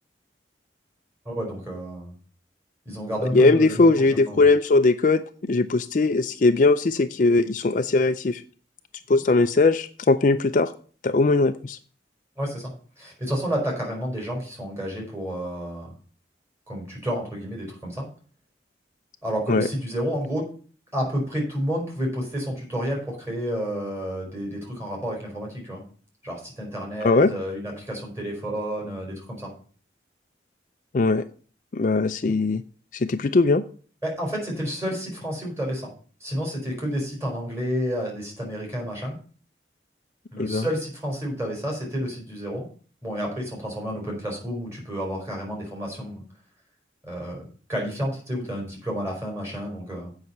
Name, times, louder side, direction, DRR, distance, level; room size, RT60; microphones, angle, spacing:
voice 1, 1.3-2.2 2.9-4.4 12.4-12.7 13.0-15.9 16.7-18.1 19.2-20.5 20.9-25.8 26.2-29.5 34.0-35.9 36.2-39.2 40.3-42.7 43.0-46.2 47.0-50.2, equal, 15° right, -1 dB, 4.0 m, -30 dB
voice 2, 3.3-5.2 5.5-8.4 9.1-10.7 11.0-11.8 19.5-19.7 27.0-27.3 30.9-31.3 31.7-32.6 32.9-33.6 40.4-40.7, left 3 dB, 45° left, 9 dB, 0.4 m, -20 dB
7.9 x 5.6 x 7.1 m, 0.41 s
head